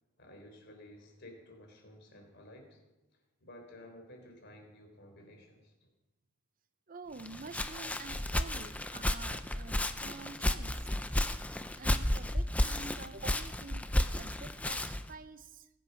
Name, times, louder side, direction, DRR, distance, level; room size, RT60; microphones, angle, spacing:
voice 1, 0.2-2.8 3.1-5.9, left 1 dB, 55° left, 2 dB, 4.0 m, -54 dB
voice 2, 6.9-10.9 11.8-15.7, right 3 dB, 40° right, 11 dB, 0.6 m, -48 dB
Walk footsteps, 7.2-15.1, left 1 dB, 5° left, 0.5 m, -33 dB
21.0 x 8.5 x 5.8 m, 1.0 s
head